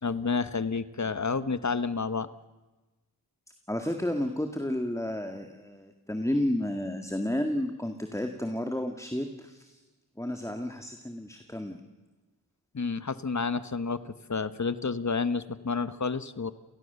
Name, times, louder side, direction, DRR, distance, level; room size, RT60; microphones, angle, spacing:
voice 1, 0.0-2.3 12.7-16.5, left 4 dB, 45° left, 14 dB, 1.2 m, -30 dB
voice 2, 3.7-9.8 10.2-11.8, left 1 dB, 10° left, 5 dB, 2.0 m, -31 dB
30.0 x 18.0 x 6.9 m, 1.2 s
wide cardioid pair, 55°, 38 cm